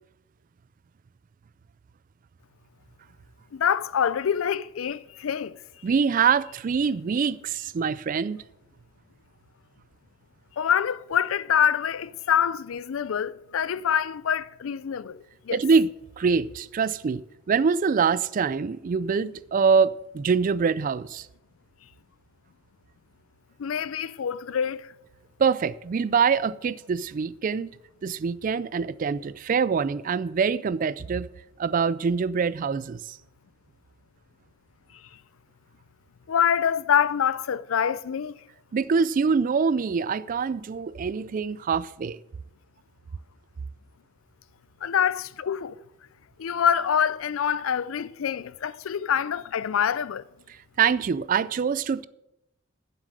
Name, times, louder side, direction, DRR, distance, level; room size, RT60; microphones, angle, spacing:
voice 1, 3.5-5.6 10.6-15.6 23.6-24.9 36.3-38.4 44.8-45.8 46.4-50.3, left 8 dB, 75° left, 0.4 m, -25 dB
voice 2, 5.8-8.4 15.5-15.9 16.2-17.2 17.5-21.3 25.4-27.7 28.0-31.3 31.6-33.2 38.7-42.2 50.8-52.1, right 5 dB, 40° right, 0.3 m, -24 dB
9.7 x 7.6 x 6.2 m
head